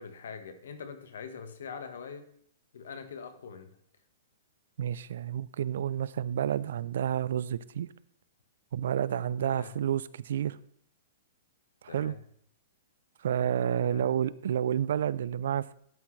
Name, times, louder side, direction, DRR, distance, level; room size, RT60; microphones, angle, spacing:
voice 1, 0.0-2.3 2.7-3.8 9.1-9.8 11.9-12.2 13.5-14.1, left 6 dB, 80° left, 8 dB, 1.3 m, -44 dB
voice 2, 4.8-7.9 8.7-10.6 11.8-12.1 13.2-15.7, right 9 dB, 70° right, 19 dB, 0.4 m, -30 dB
12.0 x 6.0 x 3.2 m, 0.65 s
hypercardioid pair, 145°, 0 cm